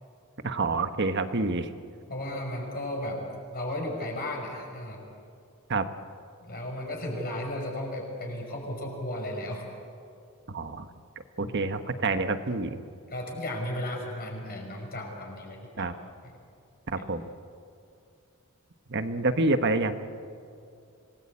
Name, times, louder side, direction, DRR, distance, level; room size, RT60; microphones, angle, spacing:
voice 1, 0.4-1.7 5.7-5.9 10.5-10.9 11.4-12.8 15.8-15.9 16.9-17.2 18.9-19.9, right 3 dB, 55° right, 9 dB, 1.2 m, -27 dB
voice 2, 2.1-3.2 3.5-5.0 6.4-9.7 11.4-11.5 13.1-15.9 16.2-16.3, left 1 dB, 45° left, 1 dB, 5.7 m, -34 dB
26.5 x 19.5 x 8.6 m, 2.5 s
head